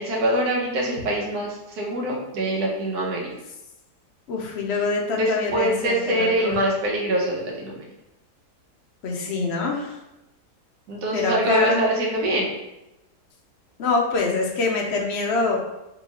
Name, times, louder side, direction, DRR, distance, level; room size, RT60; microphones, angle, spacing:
voice 1, 0.0-3.3 4.7-4.9 5.1-7.8 10.9-12.5, right 1 dB, 70° right, -3 dB, 1.4 m, -24 dB
voice 2, 4.3-6.5 9.0-10.0 11.1-11.8 13.8-15.6, left 3 dB, 65° left, 0 dB, 0.7 m, -25 dB
3.8 x 3.1 x 2.9 m, 0.93 s
omnidirectional pair, 1.8 m